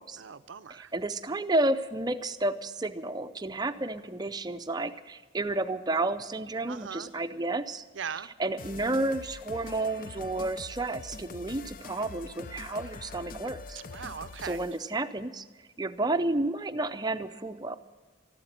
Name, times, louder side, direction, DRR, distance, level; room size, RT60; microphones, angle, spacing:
voice 1, 0.2-0.9 6.7-7.1 8.0-8.3 13.9-14.6, right 6 dB, 65° right, 13 dB, 0.5 m, -39 dB
voice 2, 0.7-7.8 8.1-13.8 14.4-15.4 15.8-17.8, right 2 dB, 20° right, 10 dB, 0.6 m, -31 dB
sound 1, 8.6-14.9, left 4 dB, 45° left, 0.5 m, -44 dB
14.0 x 12.0 x 7.4 m, 1.4 s
head